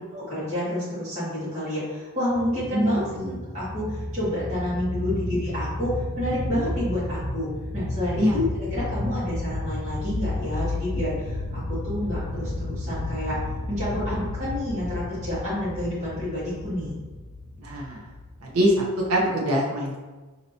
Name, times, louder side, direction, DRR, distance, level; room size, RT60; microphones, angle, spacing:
voice 1, 0.1-13.4 13.7-17.0, left 1 dB, 30° right, -11 dB, 1.4 m, -29 dB
sound 1, 2.3-19.3, left 1 dB, 30° left, 0.4 m, -32 dB
voice 2, 2.7-3.3 5.1-5.3 8.1-8.4 17.6-18.0 18.4-18.8 19.1-20.0, equal, 80° right, -3 dB, 0.7 m, -24 dB
4.3 x 2.8 x 2.7 m, 1.3 s
head